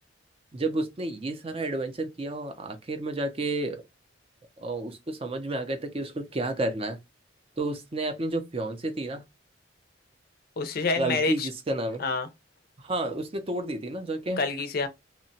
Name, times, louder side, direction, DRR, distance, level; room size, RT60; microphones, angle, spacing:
voice 1, 0.5-3.8 4.6-7.0 7.6-9.2 10.9-12.0 12.8-14.4, right 2 dB, 30° right, 0.5 m, -31 dB
voice 2, 10.6-11.5 12.0-12.3 14.4-14.9, left 4 dB, 50° left, 0.5 m, -27 dB
2.8 x 2.1 x 2.7 m
head